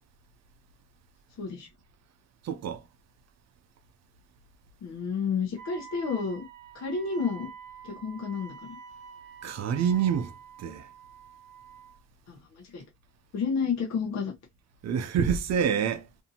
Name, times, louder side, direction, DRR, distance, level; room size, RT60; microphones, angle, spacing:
voice 1, 1.4-1.7 4.8-6.5 6.7-7.5 7.8-8.8 12.3-12.8 13.3-14.3, left 5 dB, 65° left, 0.9 m, -31 dB
voice 2, 2.4-2.8 9.4-10.9 14.8-16.1, right 7 dB, 60° right, 0.5 m, -27 dB
Wind instrument woodwind instrument, 5.6-12.0, right 6 dB, 85° right, 1.0 m, -47 dB
2.7 x 2.5 x 2.7 m
cardioid pair, 90°, 30 cm